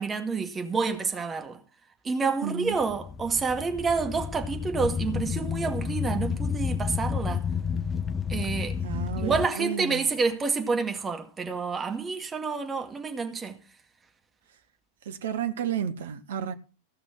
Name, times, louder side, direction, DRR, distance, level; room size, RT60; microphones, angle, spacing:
voice 1, 0.0-1.6 2.0-7.5 8.3-8.8 9.2-13.6, right 4 dB, 15° right, 2.0 m, -28 dB
voice 2, 2.4-2.8 8.8-10.1 15.0-16.5, right 8 dB, 60° right, 1.0 m, -32 dB
sound 1, 2.7-9.5, left 6 dB, 20° left, 0.5 m, -31 dB
16.0 x 6.1 x 6.1 m
figure-of-eight pair, 90°, 0 cm